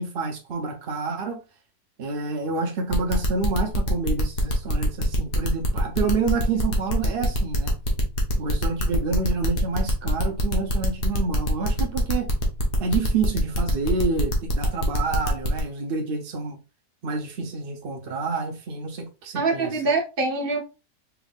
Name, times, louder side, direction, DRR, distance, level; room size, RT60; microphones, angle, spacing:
voice 1, 0.0-1.4 2.0-7.7 8.4-12.3 12.8-16.6 17.0-19.7, right 4 dB, 75° right, 0.5 m, -28 dB
sound 1, 2.9-15.6, equal, 65° left, 1.5 m, -26 dB
voice 2, 19.3-20.6, right 3 dB, 40° right, 0.9 m, -24 dB
4.6 x 3.5 x 2.3 m
omnidirectional pair, 1.9 m